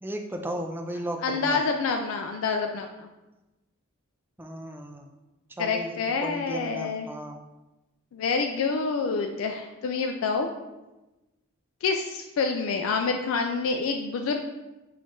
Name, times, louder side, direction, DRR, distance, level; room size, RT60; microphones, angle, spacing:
voice 1, 0.0-1.6 4.4-5.1 5.5-7.4, right 1 dB, 10° right, 4 dB, 0.4 m, -35 dB
voice 2, 1.2-3.1 5.6-7.1 8.1-10.5 11.8-14.4, left 4 dB, 70° left, 4 dB, 0.3 m, -27 dB
5.8 x 2.5 x 3.6 m, 1.1 s
head